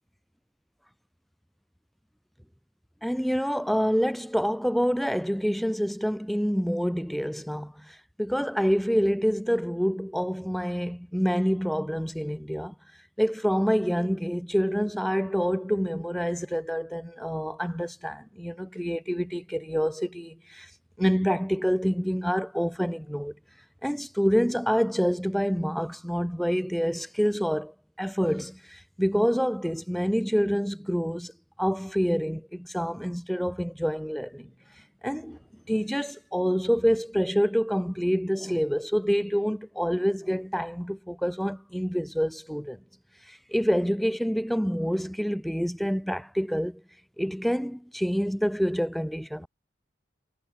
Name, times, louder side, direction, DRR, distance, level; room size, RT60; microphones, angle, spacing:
voice 1, 3.0-12.7 13.2-20.7 21.0-23.3 23.8-31.3 31.6-34.5 35.0-35.4 35.7-42.8 43.3-46.8 47.2-49.5, equal, ahead, 7.6 m, -27 dB
head